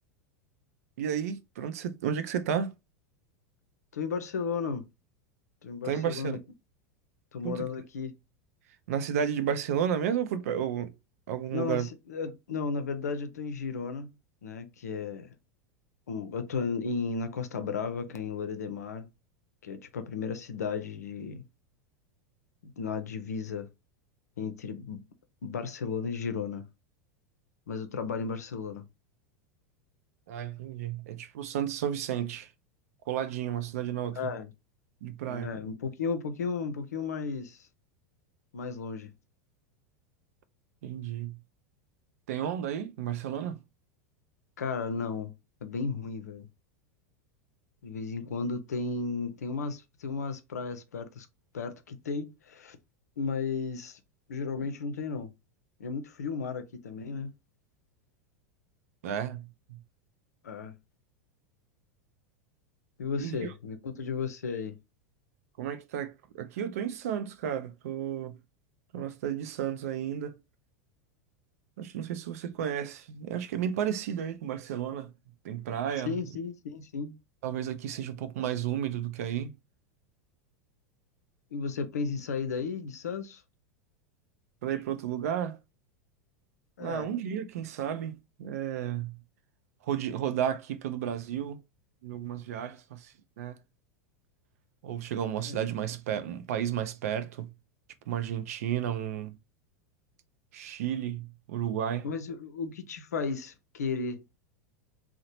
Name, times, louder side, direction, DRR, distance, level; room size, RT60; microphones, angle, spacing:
voice 1, 1.0-2.7 5.8-6.4 7.4-7.7 8.9-10.9 11.3-11.9 30.3-32.5 33.1-34.2 35.0-35.5 40.8-41.4 42.3-43.6 59.0-59.8 63.2-63.5 65.6-68.4 68.9-70.4 71.8-75.1 75.4-76.2 77.4-79.5 84.6-85.6 86.8-89.2 89.8-91.6 92.0-93.6 94.8-97.5 98.1-99.4 100.5-102.1, right 9 dB, 65° right, 0.4 m, -32 dB
voice 2, 3.9-4.8 5.6-6.4 7.3-8.1 11.5-14.1 14.4-15.3 16.1-19.1 19.6-21.4 22.6-23.7 24.4-25.0 25.4-26.7 27.7-28.8 34.1-34.5 35.3-37.7 38.5-39.1 44.6-45.3 45.6-46.5 47.8-51.3 51.5-52.8 53.2-54.0 54.3-55.3 55.8-57.3 60.4-60.8 63.0-64.8 76.1-77.2 81.5-83.4 86.8-87.1 95.4-95.7 102.0-104.2, left 5 dB, 80° left, 0.5 m, -34 dB
2.8 x 2.0 x 2.9 m
hypercardioid pair, 90°, 9 cm